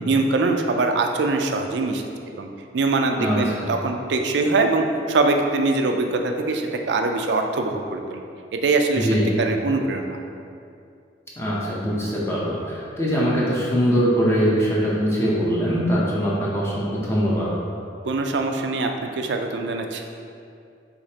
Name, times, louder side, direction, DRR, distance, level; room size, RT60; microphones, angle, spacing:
voice 1, 0.1-2.0 2.3-2.5 2.7-8.2 8.5-9.1 9.4-10.2 18.0-20.0, right 3 dB, 70° right, 4 dB, 0.4 m, -23 dB
voice 2, 3.2-3.7 8.9-9.3 11.4-17.5, equal, 15° left, -6 dB, 0.6 m, -22 dB
5.0 x 3.3 x 2.8 m, 2.4 s
head